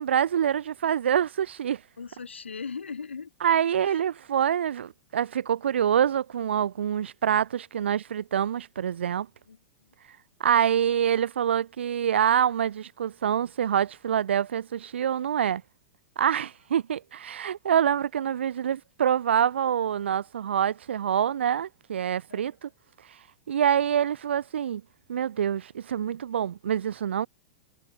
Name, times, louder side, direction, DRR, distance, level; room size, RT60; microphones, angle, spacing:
voice 1, 0.0-1.8 3.4-9.3 10.4-15.6 16.2-22.7 23.5-24.8 25.1-27.3, right 9 dB, 80° right, 0.4 m, -26 dB
voice 2, 2.0-4.1 9.5-9.9 22.3-22.4, left 5 dB, 85° left, 6.9 m, -40 dB
hypercardioid pair, 100°, 6 cm